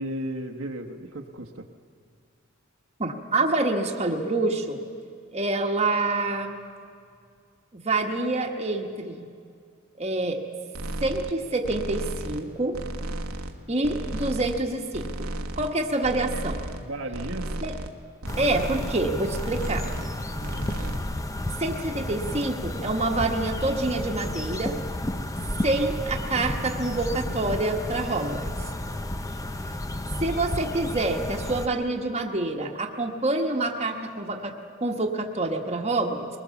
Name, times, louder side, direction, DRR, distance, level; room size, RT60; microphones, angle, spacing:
voice 1, 0.0-1.7 16.8-17.5 25.5-25.8, right 1 dB, 70° right, 4 dB, 1.2 m, -34 dB
voice 2, 3.0-4.8 5.3-6.6 7.7-9.3 10.0-10.4 11.0-12.8 13.7-15.3 15.6-16.6 17.6-17.7 18.4-19.9 21.6-24.8 25.6-28.5 30.2-36.3, right 2 dB, 30° right, 2 dB, 1.3 m, -27 dB
sound 1, 10.7-11.3 11.6-12.5 12.7-13.6 13.8-14.7 14.9-15.7 16.0-16.8 17.1-17.9 18.2-19.0 19.3-20.1 20.4-21.0, right 1 dB, 85° right, 1.4 m, -34 dB
sound 2, 18.3-31.7, left 1 dB, 15° left, 0.7 m, -32 dB
23.0 x 20.0 x 7.1 m, 2.3 s
head